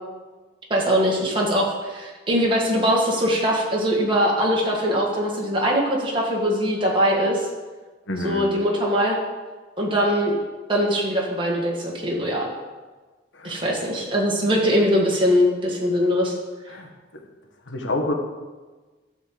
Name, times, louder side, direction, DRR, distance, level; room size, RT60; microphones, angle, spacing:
voice 1, 0.7-7.5 8.2-9.2 9.8-10.3 10.7-12.5 13.4-16.3, equal, 25° right, -3 dB, 2.0 m, -21 dB
voice 2, 8.1-8.5 13.3-13.6 16.7-17.2 17.7-18.1, left 1 dB, 80° left, 2 dB, 1.4 m, -28 dB
12.0 x 4.4 x 7.6 m, 1.3 s
head